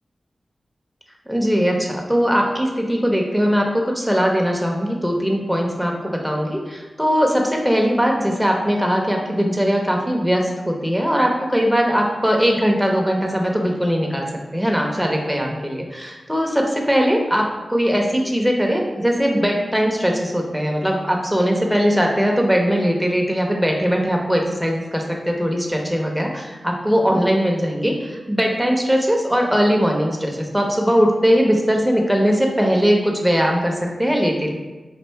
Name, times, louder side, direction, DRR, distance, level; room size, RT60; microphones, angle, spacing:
voice 1, 1.3-14.3 14.5-34.5, equal, ahead, 0 dB, 0.8 m, -20 dB
4.4 x 2.4 x 3.4 m, 1.2 s
cardioid pair, 45°, 0 cm